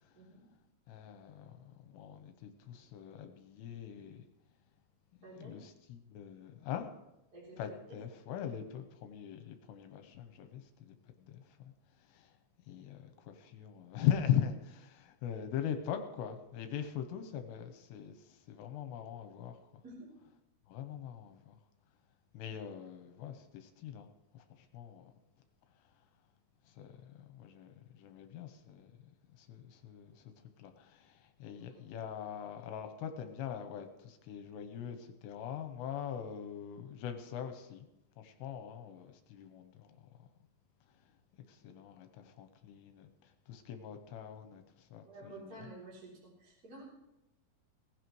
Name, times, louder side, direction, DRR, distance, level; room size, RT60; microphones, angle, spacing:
voice 1, 0.9-4.2 5.3-6.9 7.6-11.7 12.1-12.3 12.7-19.8 20.7-21.6 22.3-24.1 24.3-25.1 26.7-28.9 29.4-30.3 30.6-37.9 38.2-40.0 41.3-45.6, left 9 dB, 80° left, 7 dB, 3.0 m, -41 dB
voice 2, 5.2-5.5 7.3-7.8 19.8-20.1 31.5-31.8 45.0-46.8, right 2 dB, 20° right, -6 dB, 3.3 m, -51 dB
18.5 x 15.5 x 3.2 m, 0.90 s
omnidirectional pair, 5.1 m